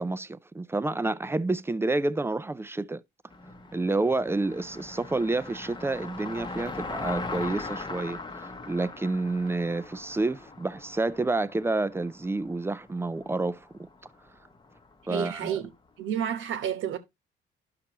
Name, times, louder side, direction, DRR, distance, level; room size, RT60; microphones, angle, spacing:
voice 1, 0.0-3.0 3.7-13.9 15.1-15.6, right 2 dB, 10° right, 0.4 m, -29 dB
Car passing by, 3.3-15.6, left 3 dB, 20° left, 0.9 m, -40 dB
voice 2, 15.1-15.7 16.0-17.0, right 9 dB, 80° right, 1.2 m, -30 dB
11.0 x 5.9 x 2.9 m
cardioid pair, 90°, 20 cm